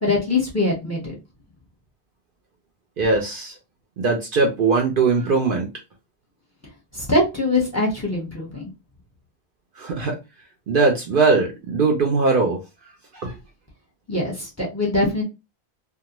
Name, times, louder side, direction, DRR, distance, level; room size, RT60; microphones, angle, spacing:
voice 1, 0.0-1.1 6.9-8.7 14.1-15.2, left 2 dB, 15° left, 0.8 m, -22 dB
voice 2, 3.0-3.5 4.0-5.7 9.8-10.2 10.7-12.6 13.1-13.4, right 4 dB, 60° right, 0.7 m, -20 dB
2.3 x 2.1 x 2.9 m
omnidirectional pair, 1.1 m